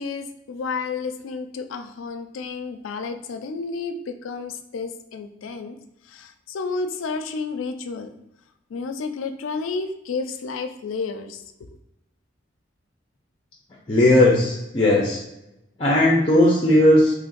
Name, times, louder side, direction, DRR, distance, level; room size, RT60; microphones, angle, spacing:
voice 1, 0.0-5.8 6.0-8.1 8.7-11.4, left 4 dB, 85° left, 9 dB, 0.4 m, -31 dB
voice 2, 13.9-15.2 15.8-17.1, left 1 dB, 30° left, -2 dB, 0.5 m, -17 dB
3.0 x 2.5 x 3.8 m, 0.89 s
head